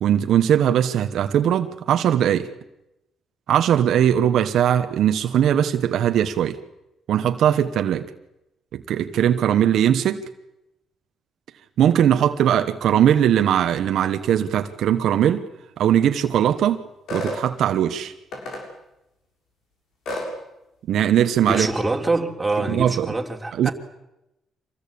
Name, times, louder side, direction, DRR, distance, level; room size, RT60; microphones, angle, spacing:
voice 1, 0.0-2.5 3.5-6.6 7.1-8.1 8.7-10.2 11.8-15.4 15.8-16.8 17.1-18.1 20.9-21.7 22.7-23.1 23.6-23.7, right 10 dB, 75° right, 1.2 m, -20 dB
sound 1, 17.1-17.4 18.3-18.6 20.0-20.3 21.5-21.7, left 1 dB, 75° left, 7.1 m, -30 dB
voice 2, 21.5-23.7, right 2 dB, 15° right, 3.4 m, -25 dB
25.5 x 18.5 x 8.6 m
cardioid pair, 80°, 0 cm